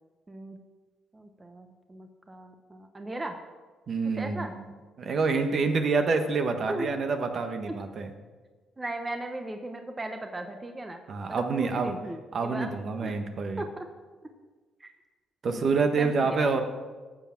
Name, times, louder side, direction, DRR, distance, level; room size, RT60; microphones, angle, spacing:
voice 1, 0.3-0.6 1.1-3.3 4.0-4.5 6.7-6.9 8.8-11.0 11.3-12.7 13.0-13.1 13.6-13.9 14.8-14.9 15.5-15.6 16.0-16.4, right 1 dB, 20° right, 5 dB, 1.0 m, -37 dB
voice 2, 3.9-4.6 5.0-8.1 11.1-11.9 12.3-13.6 15.4-16.6, right 4 dB, 50° right, 6 dB, 1.3 m, -27 dB
13.0 x 7.5 x 6.0 m, 1.4 s
cardioid pair, 90°, 0 cm